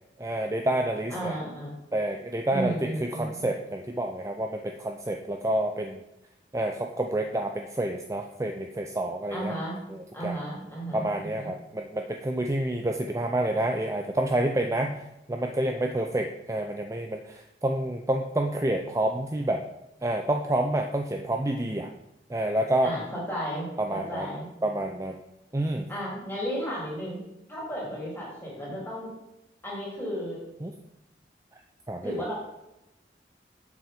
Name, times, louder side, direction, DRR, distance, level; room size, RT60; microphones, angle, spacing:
voice 1, 0.2-1.3 1.9-6.0 6.5-9.5 9.9-10.4 10.9-15.0 15.3-19.6 20.0-21.9 22.3-22.9 23.8-24.3 24.6-25.2 25.5-25.9 30.6-30.7 31.9-32.1, right 1 dB, 15° right, 4 dB, 0.4 m, -28 dB
voice 2, 1.1-1.7 2.5-3.5 9.3-9.8 10.1-11.5 22.8-24.5 25.9-27.2 27.5-29.1 29.6-30.4 32.0-32.4, equal, 10° left, -5 dB, 3.1 m, -34 dB
7.2 x 6.2 x 5.2 m, 0.90 s
head